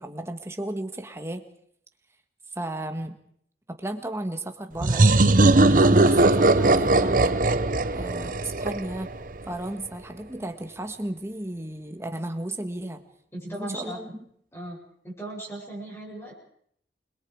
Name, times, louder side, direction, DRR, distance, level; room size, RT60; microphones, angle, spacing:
voice 1, 0.0-1.4 2.5-3.1 3.8-7.4 7.9-9.1 9.4-13.0 13.5-14.1, right 1 dB, 15° right, 6 dB, 1.8 m, -34 dB
sound 1, 4.8-9.4, right 2 dB, 50° right, 0.9 m, -19 dB
voice 2, 13.3-14.0 14.5-14.8 15.0-16.3, right 1 dB, 15° left, -4 dB, 7.6 m, -37 dB
29.0 x 22.0 x 4.9 m, 0.67 s
head